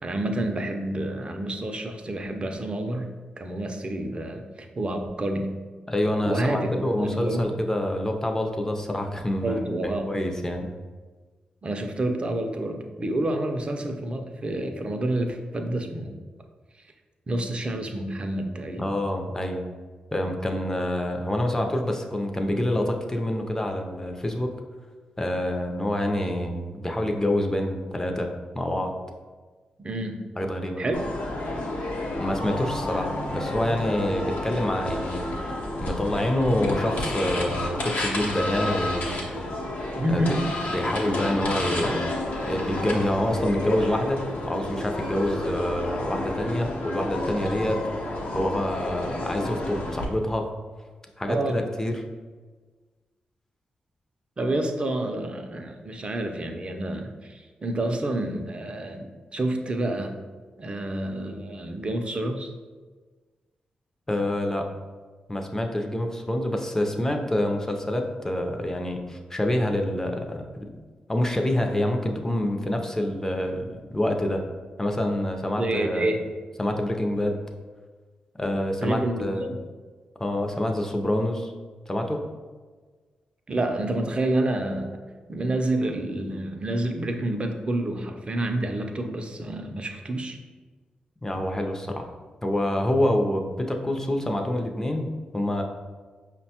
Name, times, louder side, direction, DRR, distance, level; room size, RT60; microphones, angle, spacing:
voice 1, 0.0-3.1 3.4-5.5 6.2-7.5 9.4-10.1 11.6-16.1 17.3-18.9 29.8-30.3 30.8-31.0 40.0-40.5 51.3-51.6 54.4-59.1 59.3-60.2 60.6-62.5 75.6-76.2 78.8-79.6 83.5-84.9 85.3-90.4, right 1 dB, 35° right, 5 dB, 0.5 m, -28 dB
voice 2, 5.9-10.7 18.8-19.6 20.1-24.5 25.2-28.3 28.5-28.9 30.4-30.8 32.2-35.3 35.8-39.2 40.1-40.4 40.7-42.0 42.4-47.8 48.3-50.5 51.2-52.0 64.1-64.7 65.3-70.7 71.1-74.4 74.8-76.1 76.6-77.4 78.4-79.4 80.2-81.5 81.9-82.2 91.2-92.1 92.4-95.1 95.3-95.6, left 1 dB, 15° left, 3 dB, 0.5 m, -27 dB
sound 1, 30.9-50.0, left 1 dB, 70° left, 0.7 m, -30 dB
sound 2, 36.8-46.1, right 4 dB, 90° right, 0.4 m, -42 dB
5.2 x 2.2 x 2.8 m, 1.4 s
cardioid pair, 60°, 3 cm